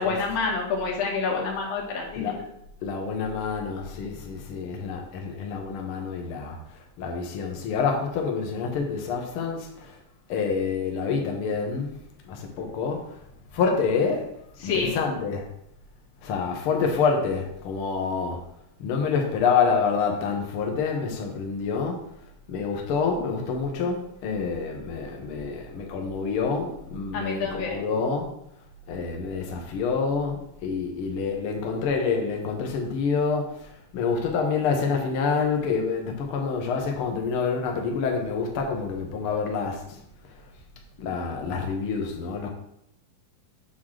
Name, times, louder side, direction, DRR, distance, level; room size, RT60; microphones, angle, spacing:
voice 1, 0.0-2.4 14.6-14.9 27.1-27.8, left 4 dB, 70° left, -1 dB, 3.3 m, -28 dB
voice 2, 2.8-10.0 10.3-13.2 13.5-14.3 14.6-15.5 16.2-18.4 18.8-22.0 22.5-28.3 28.9-39.8 40.3-40.4 41.0-42.5, left 5 dB, 85° left, 2 dB, 1.2 m, -27 dB
8.1 x 3.8 x 6.5 m, 0.76 s
omnidirectional pair, 4.4 m